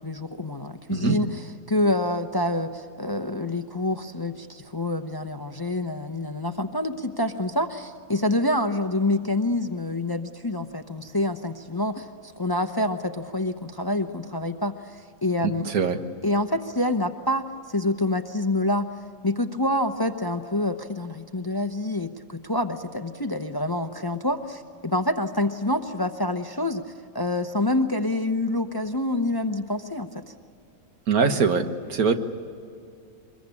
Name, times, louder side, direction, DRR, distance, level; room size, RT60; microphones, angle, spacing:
voice 1, 0.0-12.1 12.4-15.7 16.2-18.9 19.2-26.8 27.1-30.3, left 1 dB, 20° left, 7 dB, 0.7 m, -27 dB
voice 2, 15.6-16.0 31.1-32.1, right 5 dB, 90° right, 7 dB, 1.8 m, -22 dB
25.0 x 22.0 x 8.4 m, 2.4 s
omnidirectional pair, 1.5 m